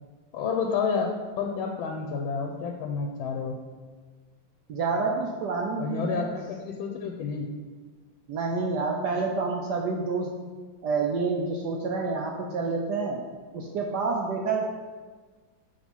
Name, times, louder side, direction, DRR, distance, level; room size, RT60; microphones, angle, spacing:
voice 1, 0.3-3.5 5.8-7.5, left 5 dB, 80° left, 2 dB, 1.4 m, -30 dB
voice 2, 4.7-6.2 8.3-10.3 10.8-13.2 13.5-14.6, right 4 dB, 70° right, 0 dB, 1.0 m, -28 dB
6.4 x 3.4 x 5.4 m, 1.4 s
omnidirectional pair, 2.2 m